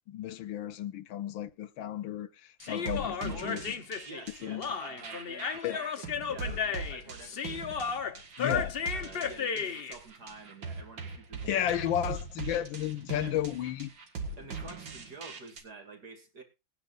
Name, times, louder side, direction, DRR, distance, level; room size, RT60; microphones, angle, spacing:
voice 1, 0.1-3.6 4.4-4.7 5.6-5.8 8.4-8.7 11.5-13.9, left 11 dB, 80° left, 1.5 m, -33 dB
Human voice, 2.6-10.0, left 6 dB, 45° left, 0.7 m, -34 dB
sound 1, 2.6-15.6, right 4 dB, 80° right, 2.6 m, -41 dB
voice 2, 3.3-3.7 4.1-7.7 8.5-11.6 12.8-12.9 13.2-13.3 14.4-16.4, right 3 dB, 55° right, 3.1 m, -48 dB
21.0 x 9.7 x 2.6 m
omnidirectional pair, 2.1 m